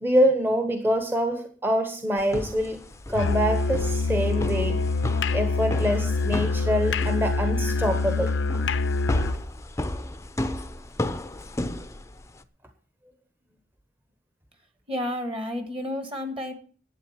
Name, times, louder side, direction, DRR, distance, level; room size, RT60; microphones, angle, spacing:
voice 1, 0.0-2.8 3.1-4.8 5.3-8.4, equal, 10° right, 6 dB, 1.0 m, -25 dB
sound 1, 2.2-12.4, left 1 dB, 15° left, 0.6 m, -34 dB
Musical instrument, 3.1-9.5, left 3 dB, 70° left, 0.7 m, -25 dB
voice 2, 14.9-16.5, left 1 dB, 30° right, 7 dB, 1.6 m, -31 dB
11.0 x 8.7 x 7.2 m, 0.43 s
head